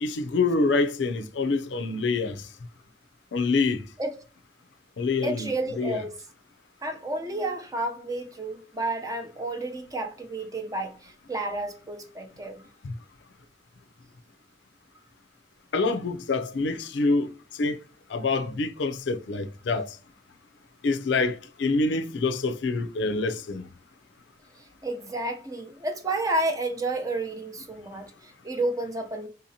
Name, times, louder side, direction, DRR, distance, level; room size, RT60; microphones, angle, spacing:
voice 1, 0.0-2.5 3.3-3.9 5.0-5.5 5.8-6.0 12.8-12.9 15.7-17.8 18.1-20.0 20.8-23.7, left 3 dB, 70° left, 0.4 m, -26 dB
voice 2, 5.2-6.1 6.8-12.6 24.6-29.3, right 2 dB, 20° right, 0.6 m, -31 dB
3.9 x 2.7 x 2.7 m
head